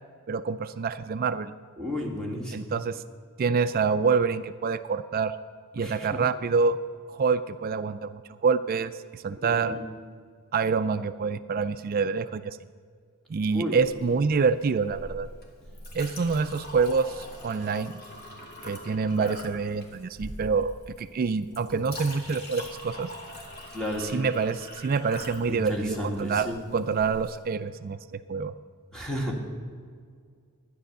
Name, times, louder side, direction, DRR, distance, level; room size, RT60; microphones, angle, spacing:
voice 1, 0.3-1.5 2.5-3.0 3.4-5.4 5.7-6.8 7.1-9.8 10.5-12.6 13.3-15.3 15.9-18.0 18.6-23.1 24.0-28.5, right 5 dB, 40° right, 12 dB, 0.3 m, -27 dB
voice 2, 1.8-2.7 5.8-6.2 9.4-9.8 13.5-13.8 23.7-24.2 25.5-26.6 28.9-29.4, equal, 5° left, -1 dB, 2.0 m, -32 dB
Chink clink, 13.8-27.4, left 1 dB, 45° left, 2.5 m, -43 dB
13.0 x 10.0 x 6.7 m, 2.1 s
head